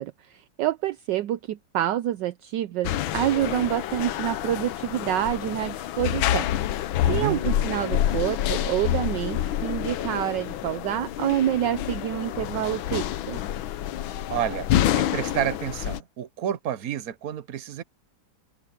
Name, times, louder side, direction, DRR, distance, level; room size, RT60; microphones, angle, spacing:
voice 1, 0.0-6.5 6.7-13.4, right 12 dB, 70° right, 1.2 m, -27 dB
sound 1, 2.8-16.0, left 12 dB, 85° left, 1.6 m, -28 dB
voice 2, 7.0-7.4 14.3-17.8, right 10 dB, 55° right, 1.3 m, -30 dB
omnidirectional pair, 2.2 m